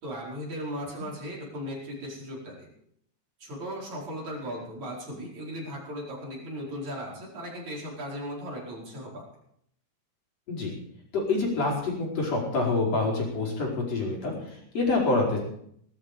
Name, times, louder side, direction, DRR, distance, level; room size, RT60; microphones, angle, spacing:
voice 1, 0.0-2.7 3.4-9.2, equal, 70° right, -4 dB, 6.2 m, -37 dB
voice 2, 11.1-15.4, left 3 dB, 55° left, -2 dB, 6.0 m, -27 dB
19.0 x 13.0 x 5.2 m, 0.69 s
omnidirectional pair, 3.3 m